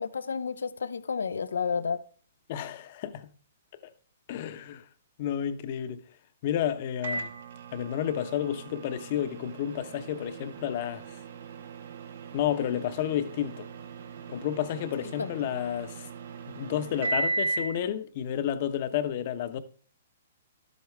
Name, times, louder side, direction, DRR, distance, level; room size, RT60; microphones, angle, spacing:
voice 1, 0.0-2.0 15.0-15.3, left 6 dB, 85° left, 0.8 m, -31 dB
voice 2, 2.5-3.3 4.3-4.8 5.2-6.0 6.4-7.3 7.7-11.1 12.3-13.7 14.3-16.1 16.5-19.6, left 10 dB, 50° left, 1.0 m, -31 dB
Microwave oven, 7.0-17.8, right 3 dB, 65° right, 1.2 m, -37 dB
12.0 x 8.2 x 3.4 m
hypercardioid pair, 135°, 0 cm